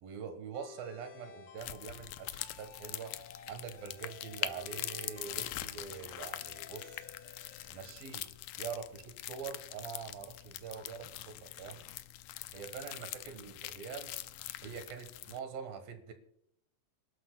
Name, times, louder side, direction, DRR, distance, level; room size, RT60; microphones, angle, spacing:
voice 1, 0.0-3.2 3.5-7.1 7.7-8.3 8.6-11.8 12.5-14.1 14.6-16.1, right 6 dB, 75° right, 7 dB, 3.0 m, -44 dB
sound 1, 0.5-8.7, left 6 dB, 50° left, 1.9 m, -55 dB
sound 2, 1.6-15.4, left 14 dB, 80° left, 1.9 m, -43 dB
27.0 x 12.5 x 2.2 m, 0.77 s
omnidirectional pair, 4.2 m